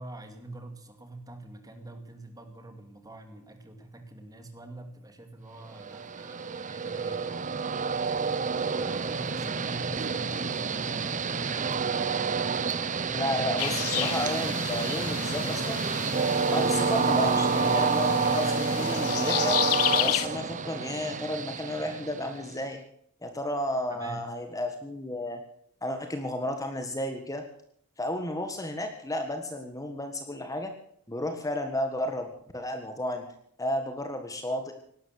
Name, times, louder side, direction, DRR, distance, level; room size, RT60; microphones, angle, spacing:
voice 1, 0.0-11.1 11.4-12.0 23.9-24.3, right 2 dB, 15° right, 7 dB, 2.4 m, -45 dB
Train, 5.8-22.5, right 5 dB, 35° right, 0.8 m, -28 dB
voice 2, 13.1-15.8 16.5-19.6 19.9-22.8 23.2-25.4 25.8-27.4 28.0-30.7 31.1-32.3 32.5-33.2 33.6-34.7, left 1 dB, 15° left, 6 dB, 1.5 m, -32 dB
sound 1, 13.6-20.3, left 14 dB, 80° left, 0.7 m, -32 dB
18.0 x 12.5 x 6.6 m, 0.66 s
head